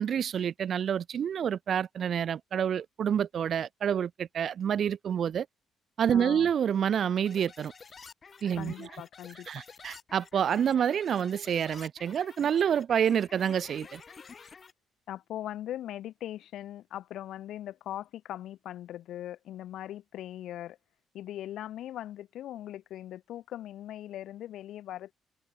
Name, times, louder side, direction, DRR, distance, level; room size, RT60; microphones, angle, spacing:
voice 1, 0.0-5.5 6.0-7.7 8.4-8.9 9.5-14.0, right 8 dB, 55° right, 0.5 m, -28 dB
voice 2, 6.1-6.5 8.6-9.6 15.1-20.8 21.1-25.1, left 12 dB, 65° left, 1.8 m, -40 dB
sound 1, 7.3-14.7, left 5 dB, 40° left, 2.9 m, -50 dB
figure-of-eight pair, 45°, 0 cm